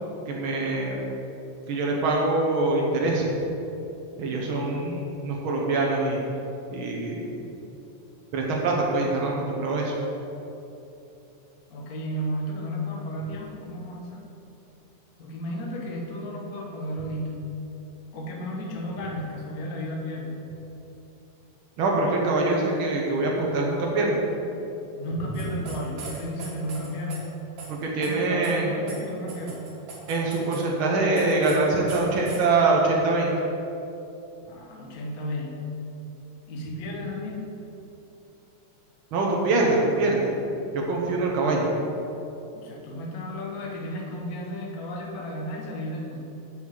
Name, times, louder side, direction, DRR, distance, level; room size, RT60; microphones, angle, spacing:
voice 1, 0.3-1.0 1.7-3.3 4.2-6.2 6.7-7.5 8.3-9.9 21.8-24.2 27.7-28.7 30.1-33.3 39.1-40.3 40.7-41.7, right 2 dB, 90° right, -2 dB, 1.1 m, -24 dB
voice 2, 4.3-5.0 11.7-14.2 15.2-17.5 18.1-20.4 25.0-27.3 28.0-29.7 34.5-35.6 36.5-37.4 42.5-46.2, equal, 75° left, -2 dB, 0.8 m, -33 dB
sound 1, 25.3-27.2 27.6-27.7 28.0-28.1 28.4-28.5 28.9-29.0 29.3-30.6 31.2-31.6 31.9-32.4, right 4 dB, 55° right, 2.5 m, -40 dB
6.4 x 6.3 x 7.2 m, 2.9 s
omnidirectional pair, 3.8 m